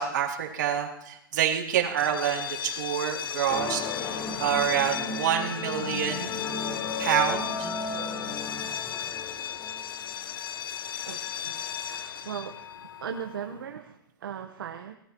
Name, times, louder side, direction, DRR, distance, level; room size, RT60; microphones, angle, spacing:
voice 1, 0.0-6.5 7.0-7.7, right 9 dB, 55° right, 0 dB, 3.1 m, -27 dB
sound 1, 1.9-13.6, left 9 dB, 70° left, 0.9 m, -36 dB
sound 2, 3.5-10.0, left 4 dB, 20° left, 1.1 m, -35 dB
voice 2, 11.0-12.6 13.0-14.9, right 8 dB, 70° right, 4 dB, 1.2 m, -38 dB
26.5 x 18.0 x 3.0 m, 0.80 s
hypercardioid pair, 165°, 12 cm